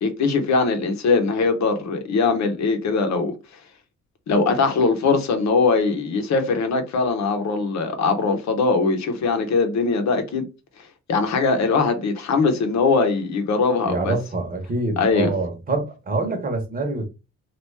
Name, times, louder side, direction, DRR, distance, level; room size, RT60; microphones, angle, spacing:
voice 1, 0.0-3.3 4.3-10.5 11.1-14.2 15.0-15.3, left 4 dB, 65° left, 0.9 m, -21 dB
voice 2, 13.8-17.1, right 2 dB, 30° right, 1.1 m, -25 dB
3.1 x 2.5 x 3.3 m
cardioid pair, 90°, 30 cm